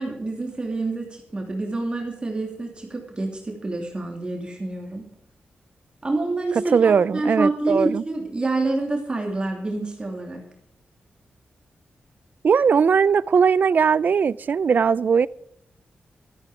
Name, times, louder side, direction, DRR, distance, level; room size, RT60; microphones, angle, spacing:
voice 1, 0.0-5.1 6.0-10.4, right 2 dB, 25° right, 2.9 m, -27 dB
voice 2, 6.7-8.0 12.4-15.3, right 6 dB, 55° right, 0.4 m, -19 dB
13.5 x 13.0 x 5.0 m
wide cardioid pair, 105°, 4 cm